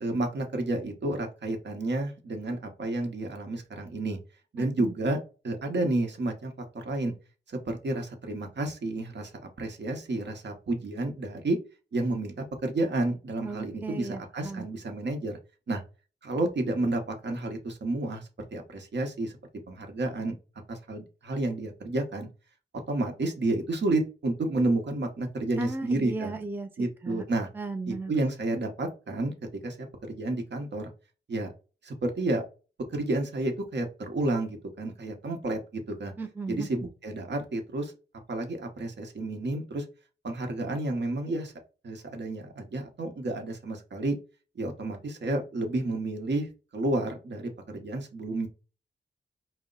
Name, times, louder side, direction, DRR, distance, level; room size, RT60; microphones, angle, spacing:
voice 1, 0.0-4.2 4.5-7.1 7.5-9.3 9.6-11.6 11.9-15.4 15.7-15.8 16.2-19.3 19.7-20.3 20.7-22.3 22.9-26.4 26.8-27.5 27.9-29.3 29.6-30.9 31.3-31.5 31.8-32.4 32.9-36.1 36.5-37.9 38.3-39.8 40.2-41.5 41.8-44.2 44.5-48.5, right 2 dB, 65° right, 1.0 m, -30 dB
voice 2, 4.6-4.9 13.4-14.7 25.6-26.7 27.0-27.2 27.5-28.1 36.2-36.9, right 3 dB, 10° right, 0.4 m, -36 dB
5.0 x 2.1 x 3.8 m
wide cardioid pair, 120°, 20 cm